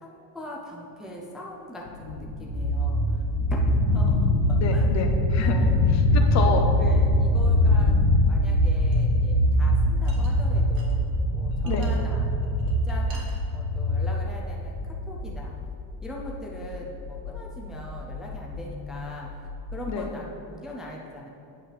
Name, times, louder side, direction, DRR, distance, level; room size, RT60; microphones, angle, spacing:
voice 1, 0.0-3.2 3.5-4.4 4.7-4.8 5.4-5.7 6.4-6.5 6.8-8.0 8.3-12.2 12.6-15.5 16.0-19.3 19.7-21.3, left 1 dB, ahead, -3 dB, 0.4 m, -41 dB
sound 1, 1.9-19.7, left 3 dB, 75° left, 0.8 m, -26 dB
sound 2, 2.5-12.9, right 3 dB, 35° right, 0.7 m, -25 dB
voice 2, 4.6-5.5 5.9-6.7 11.6-11.9 19.9-20.1, left 6 dB, 40° left, 5 dB, 0.8 m, -28 dB
sound 3, 8.9-9.1 10.0-10.9 11.3-11.9 12.4-13.4, right 3 dB, 85° right, 1.5 m, -48 dB
8.9 x 7.4 x 3.3 m, 2.8 s
cardioid pair, 165°, 41 cm